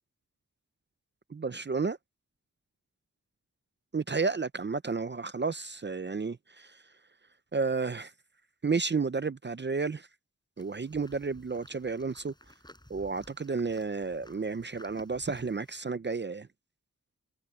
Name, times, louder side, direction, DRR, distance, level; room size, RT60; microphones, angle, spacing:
voice 1, 1.3-2.0 3.9-6.8 7.5-8.1 8.6-10.1 10.6-12.3 12.9-16.5, right 4 dB, 35° right, 0.5 m, -32 dB
sound 1, 10.6-15.8, left 1 dB, 15° left, 4.1 m, -56 dB
wide cardioid pair, 80°, 30 cm